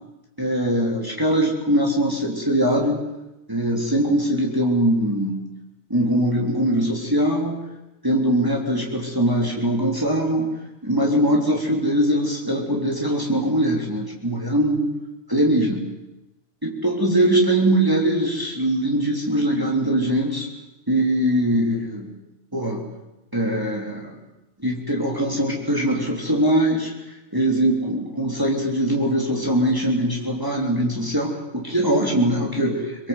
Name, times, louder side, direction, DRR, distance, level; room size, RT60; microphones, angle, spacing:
voice 1, 0.4-3.0 3.5-5.4 5.9-7.6 8.0-10.5 10.8-14.9 15.3-15.8 16.6-20.5 20.9-22.1 22.5-22.8 23.3-24.2 24.6-33.1, right 1 dB, 15° right, -1 dB, 3.7 m, -22 dB
25.5 x 22.5 x 8.1 m, 0.99 s
omnidirectional pair, 1.2 m